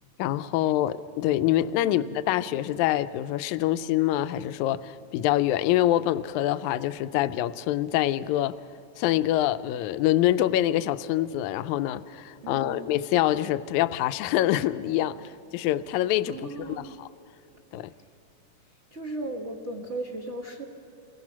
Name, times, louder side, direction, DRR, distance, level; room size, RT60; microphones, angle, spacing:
voice 1, 0.2-8.6 9.0-17.1 17.7-17.9, left 13 dB, 75° left, 13 dB, 1.9 m, -25 dB
voice 2, 12.4-12.9 16.3-16.9 18.9-20.6, right 2 dB, 50° right, 1 dB, 0.8 m, -36 dB
27.5 x 21.0 x 6.0 m, 2.8 s
omnidirectional pair, 3.7 m